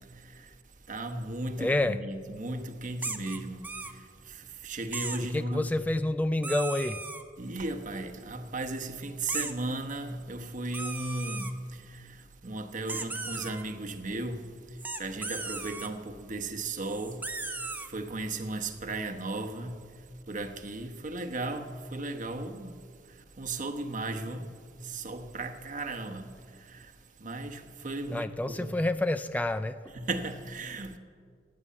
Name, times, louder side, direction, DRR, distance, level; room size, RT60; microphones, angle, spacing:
voice 1, 0.9-3.7 4.3-5.7 7.4-14.5 15.0-17.3 17.9-19.8 20.3-22.8 23.4-24.5 24.8-26.9 27.2-28.7 29.9-31.0, right 2 dB, 45° right, 1.1 m, -36 dB
voice 2, 1.6-2.0 5.3-7.0 28.1-29.9, left 2 dB, 10° left, 0.3 m, -28 dB
sound 1, 3.0-3.9 4.9-5.2 6.4-7.2 9.3-9.5 10.7-11.5 12.9-13.6 14.8-15.9 16.8-17.9, right 3 dB, 10° right, 0.8 m, -36 dB
15.5 x 9.7 x 8.5 m
head